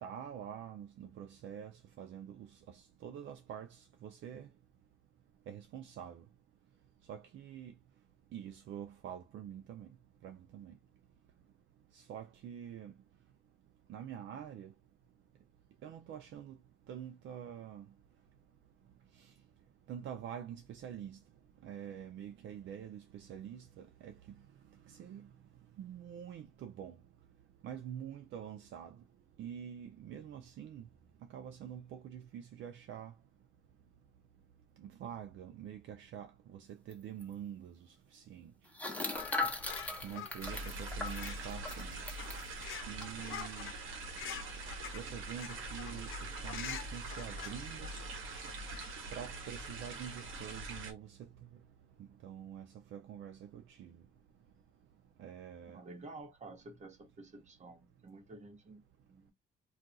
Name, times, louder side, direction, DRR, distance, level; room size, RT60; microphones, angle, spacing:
voice 1, 0.0-4.5 5.5-6.2 7.1-7.7 8.3-9.9 10.2-10.7 11.9-12.9 13.9-14.7 15.8-16.6 16.9-17.9 19.2-19.3 19.9-21.2 21.6-24.1 24.9-25.3 25.8-27.0 27.6-29.0 29.4-30.9 31.3-33.1 34.8-37.8 38.1-38.5 40.0-42.0 42.9-43.7 44.9-47.9 49.1-51.3 52.2-54.0 55.2-55.8, right 9 dB, 70° right, 0.5 m, -46 dB
sound 1, 36.9-37.0 37.2-37.3 38.7-42.4 43.0-43.1 43.4-43.7, left 3 dB, 5° left, 0.9 m, -39 dB
sound 2, 39.1-48.9, left 7 dB, 80° left, 0.7 m, -48 dB
sound 3, 40.4-50.9, right 2 dB, 90° right, 1.0 m, -43 dB
voice 2, 55.7-59.3, right 2 dB, 35° right, 1.1 m, -51 dB
2.4 x 2.3 x 3.9 m
cardioid pair, 90°, 20 cm